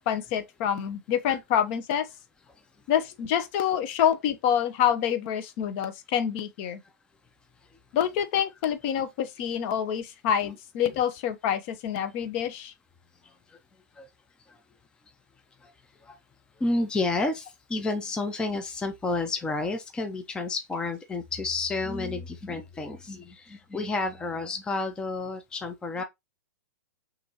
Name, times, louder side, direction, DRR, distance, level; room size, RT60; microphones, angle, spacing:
voice 1, 0.0-2.1 2.9-6.8 7.9-12.7, left 9 dB, 40° left, 0.8 m, -27 dB
voice 2, 13.2-13.6 13.9-14.1 14.5-14.6 15.6-16.2 16.6-26.0, left 3 dB, 10° left, 0.5 m, -31 dB
6.0 x 2.6 x 2.9 m
figure-of-eight pair, 110°, 10 cm